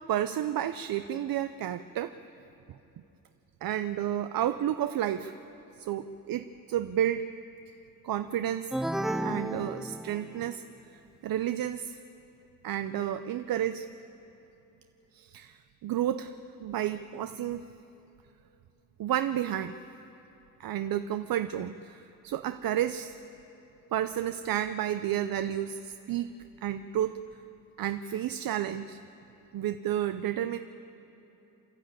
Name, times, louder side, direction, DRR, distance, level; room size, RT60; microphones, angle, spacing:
voice 1, 0.1-2.1 3.6-5.3 5.8-7.3 8.0-8.7 9.2-10.6 10.9-12.0 12.6-13.9 15.1-16.3 16.6-17.6 19.0-19.7 20.6-23.1 23.9-26.3 26.6-27.2 27.8-29.0 29.5-30.6, right 11 dB, 85° right, 10 dB, 0.6 m, -31 dB
sound 1, 8.7-10.6, right 1 dB, ahead, 0.4 m, -32 dB
28.5 x 12.5 x 8.8 m, 3.0 s
wide cardioid pair, 170°, 34 cm